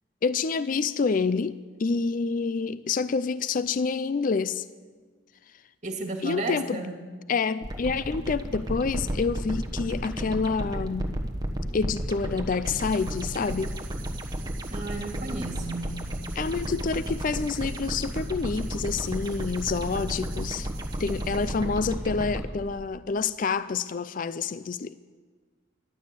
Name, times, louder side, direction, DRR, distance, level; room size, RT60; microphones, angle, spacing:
voice 1, 0.2-4.6 6.2-6.8 7.3-11.1 11.7-13.7 16.4-20.7 21.0-25.0, left 4 dB, 45° left, 15 dB, 0.4 m, -28 dB
voice 2, 5.8-6.9 14.7-16.0, right 3 dB, 40° right, 3 dB, 2.1 m, -33 dB
sound 1, 7.6-22.4, right 1 dB, 20° right, 1.1 m, -33 dB
sound 2, 12.6-21.8, right 12 dB, 75° right, 1.1 m, -49 dB
14.5 x 11.5 x 8.2 m, 1.5 s
head